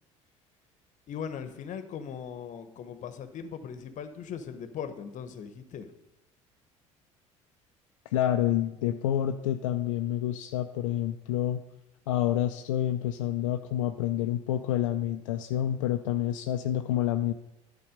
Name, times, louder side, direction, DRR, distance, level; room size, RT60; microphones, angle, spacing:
voice 1, 1.1-5.9, left 7 dB, 50° left, 10 dB, 1.0 m, -39 dB
voice 2, 8.1-11.6 12.1-17.3, left 12 dB, 80° left, 5 dB, 0.5 m, -28 dB
11.5 x 4.3 x 6.5 m, 0.91 s
hypercardioid pair, 65°, 16 cm